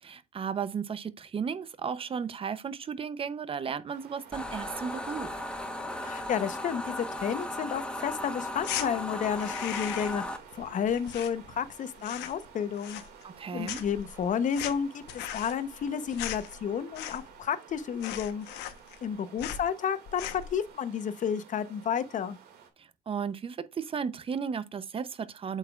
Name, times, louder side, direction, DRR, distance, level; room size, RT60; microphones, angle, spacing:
voice 1, 0.0-5.4 13.2-13.8 22.8-25.6, right 6 dB, 35° right, 0.7 m, -35 dB
sound 1, 3.9-22.7, right 7 dB, 70° right, 2.2 m, -53 dB
sound 2, 4.3-10.4, left 1 dB, 5° left, 1.1 m, -36 dB
voice 2, 6.0-13.0 13.5-18.5 19.0-22.4, left 8 dB, 50° left, 0.8 m, -31 dB
sound 3, 8.6-8.9 9.3-10.3 10.5-11.7 12.0-12.5 12.8-13.4 13.6-17.4 17.7-17.8 18.0-19.1 19.4-19.7 20.1-20.5, left 11 dB, 85° left, 1.0 m, -38 dB
8.2 x 5.7 x 2.4 m
cardioid pair, 110°, 17 cm